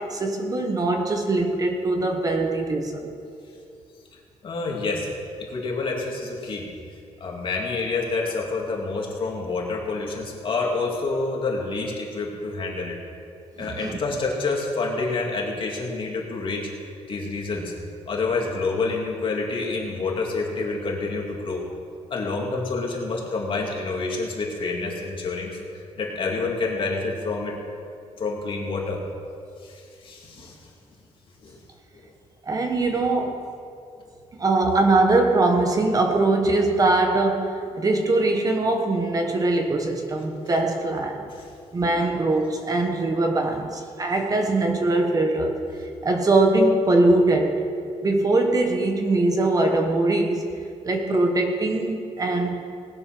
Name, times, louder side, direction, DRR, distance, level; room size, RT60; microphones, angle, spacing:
voice 1, 0.0-3.1 13.6-14.0 32.4-33.4 34.4-41.2 41.7-45.7 46.0-47.6 48.0-50.5 50.8-52.6, right 2 dB, 30° right, 3 dB, 1.2 m, -22 dB
voice 2, 4.4-5.1 5.4-6.7 7.2-13.0 13.6-16.7 17.1-17.7 18.1-21.7 22.1-25.6 26.0-27.6 28.2-29.0 29.6-30.7 31.4-31.6 31.9-32.1 41.3-41.5, left 3 dB, 45° left, -1 dB, 2.5 m, -28 dB
19.0 x 7.7 x 6.1 m, 2.4 s
cardioid pair, 140°, 12 cm